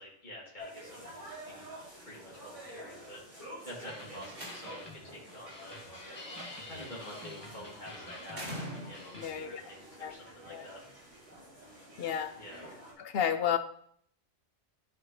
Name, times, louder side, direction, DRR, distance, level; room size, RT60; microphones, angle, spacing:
voice 1, 0.0-1.7 2.0-10.8 12.3-12.6, equal, 40° left, -5 dB, 2.5 m, -49 dB
sound 1, 0.6-12.9, right 1 dB, 30° right, 3.0 m, -49 dB
sound 2, 3.9-9.3, left 2 dB, 20° left, 1.5 m, -49 dB
Slam, 4.0-5.0 6.5-7.0 8.3-9.3, equal, 50° right, 2.2 m, -43 dB
voice 2, 9.1-9.6 10.0-10.1 10.5-10.6 12.0-12.3 13.0-13.6, left 9 dB, 65° left, 10 dB, 0.7 m, -31 dB
12.5 x 4.4 x 3.1 m, 0.64 s
omnidirectional pair, 1.2 m